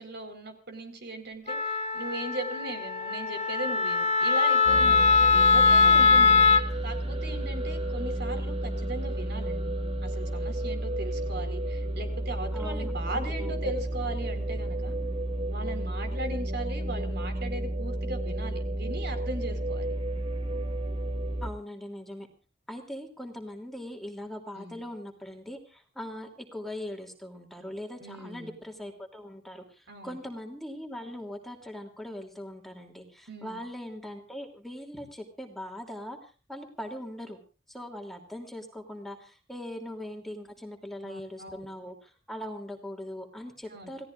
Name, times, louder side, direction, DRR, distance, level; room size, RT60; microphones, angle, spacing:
voice 1, 0.0-6.4 6.8-9.7 10.0-14.9 15.5-19.9 24.5-24.8 28.0-28.6 29.9-30.2 33.3-33.6 41.0-41.6 43.7-43.9, right 2 dB, 60° right, 7 dB, 4.4 m, -38 dB
Wind instrument woodwind instrument, 1.5-6.6, left 4 dB, 35° left, 2.4 m, -21 dB
sound 1, 4.6-21.5, right 1 dB, 30° right, 2.5 m, -32 dB
voice 2, 12.5-13.7 21.4-22.3 22.7-36.2 36.5-37.4 37.7-44.1, left 1 dB, ahead, 2 dB, 2.9 m, -41 dB
29.0 x 17.5 x 2.5 m, 0.36 s
head